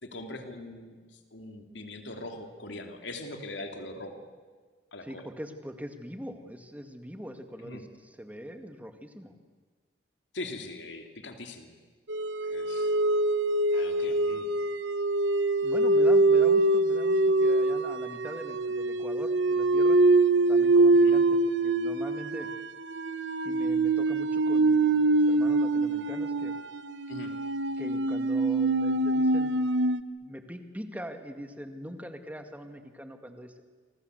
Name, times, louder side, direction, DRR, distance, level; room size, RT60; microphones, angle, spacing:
voice 1, 0.0-1.0 1.3-4.1 4.9-5.3 7.6-7.8 10.3-11.8 12.4-13.0 13.7-14.5 20.9-21.1 27.1-27.3, left 2 dB, 80° left, 5 dB, 2.8 m, -41 dB
voice 2, 5.0-7.9 8.2-9.3 15.6-20.0 20.5-22.5 23.4-26.5 27.8-29.6 30.2-33.6, equal, 10° right, 7 dB, 2.0 m, -42 dB
sound 1, 12.1-30.0, right 2 dB, 80° right, 1.1 m, -24 dB
28.5 x 25.5 x 8.1 m, 1.5 s
head